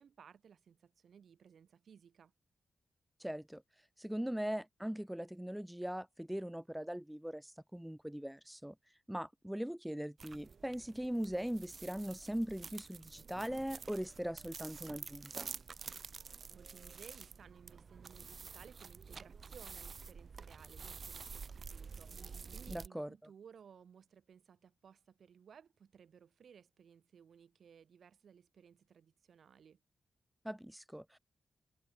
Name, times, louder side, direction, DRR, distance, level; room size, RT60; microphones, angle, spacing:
voice 1, 0.0-2.3 16.3-29.8, right 7 dB, 70° right, 4.8 m, -60 dB
voice 2, 3.2-3.6 4.0-8.7 9.1-15.5 22.7-23.1 30.4-31.2, equal, 5° right, 1.2 m, -40 dB
sound 1, 10.2-22.9, right 5 dB, 50° right, 0.5 m, -49 dB
cardioid pair, 95°, 0 cm